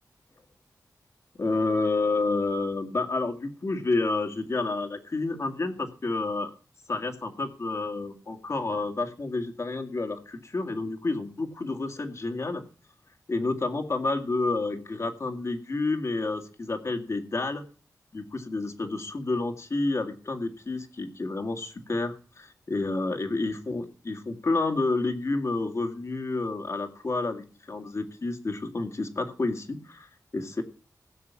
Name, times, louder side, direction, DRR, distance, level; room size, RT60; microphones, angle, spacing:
voice 1, 1.4-6.5 6.9-12.6 13.3-17.6 18.1-30.6, left 3 dB, 50° left, 6 dB, 2.2 m, -29 dB
16.5 x 6.9 x 7.1 m, 0.37 s
wide cardioid pair, 90°, 6 cm